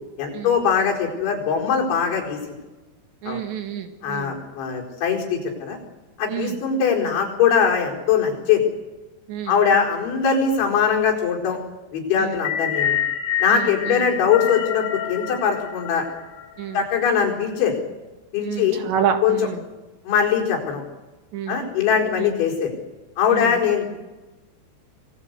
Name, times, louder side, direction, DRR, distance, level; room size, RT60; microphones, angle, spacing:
voice 1, 0.2-2.6 3.3-3.4 4.0-5.8 6.2-8.6 9.5-11.6 11.9-13.0 13.4-16.1 16.7-17.8 18.3-18.8 19.2-19.4 20.0-20.8 21.5-22.7 23.2-23.9, left 7 dB, 90° left, -1 dB, 6.9 m, -21 dB
voice 2, 3.2-4.4 6.3-6.6 9.3-9.6 12.2-12.4 13.5-14.1 16.6-16.8 18.4-19.7 21.3-21.6 22.2-22.3 23.3-23.6, right 8 dB, 75° right, 6 dB, 4.1 m, -29 dB
sound 1, 12.3-16.6, left 9 dB, 65° left, 4.2 m, -27 dB
26.5 x 18.5 x 8.3 m, 1.1 s
omnidirectional pair, 5.2 m